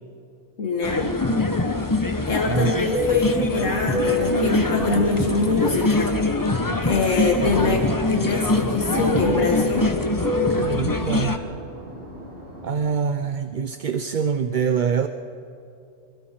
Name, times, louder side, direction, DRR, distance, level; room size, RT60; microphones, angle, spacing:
voice 1, 0.6-1.2 2.3-6.2 6.8-9.9, left 3 dB, 75° left, 1 dB, 1.8 m, -24 dB
sound 1, 0.8-11.4, left 2 dB, 15° left, 0.9 m, -23 dB
Fixed-wing aircraft airplane, 1.8-6.7 7.0-12.9, left 2 dB, 70° right, 6.5 m, -31 dB
voice 2, 10.5-11.4 12.6-15.1, right 6 dB, 50° right, 8 dB, 0.6 m, -24 dB
26.0 x 26.0 x 4.5 m, 2.6 s
omnidirectional pair, 1.3 m